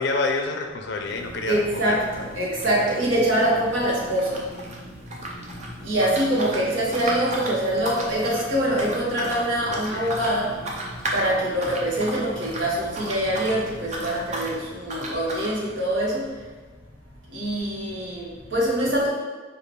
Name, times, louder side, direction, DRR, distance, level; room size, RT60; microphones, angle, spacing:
voice 1, 0.0-1.5 1.8-2.0 2.9-3.0 9.7-10.1, left 3 dB, 60° left, 3 dB, 0.4 m, -28 dB
sound 1, 1.0-14.5, equal, 5° right, 1.3 m, -42 dB
voice 2, 1.4-4.4 5.8-10.7 11.1-16.3 17.3-19.1, right 1 dB, 75° right, -5 dB, 1.1 m, -24 dB
sound 2, 2.2-4.8 5.1-13.6 13.8-14.5 14.9-15.5, right 1 dB, 35° right, 0.6 m, -34 dB
5.1 x 2.4 x 3.3 m, 1.3 s
head